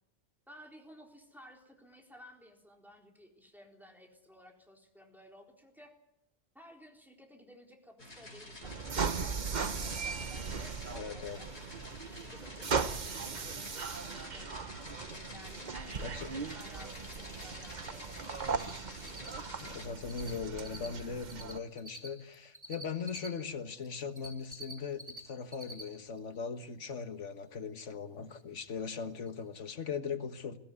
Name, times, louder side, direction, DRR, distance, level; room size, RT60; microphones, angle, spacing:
voice 1, 0.5-5.9 6.5-11.7 12.1-14.8 15.3-18.6, equal, ahead, 4.0 m, -56 dB
sound 1, 8.0-19.9, left 1 dB, 65° left, 5.0 m, -49 dB
sound 2, 8.6-21.6, right 5 dB, 40° right, 1.0 m, -38 dB
voice 2, 10.9-11.4 16.0-16.3 19.6-30.6, left 6 dB, 85° left, 1.7 m, -39 dB
Cricket, 18.5-18.7 19.0-20.3 20.6-23.3 23.8-25.2 25.5-25.8 26.2-26.3 28.8-28.9 29.3-29.4 29.5-29.6, right 1 dB, 20° right, 4.0 m, -46 dB
22.0 x 16.0 x 9.6 m
omnidirectional pair, 1.2 m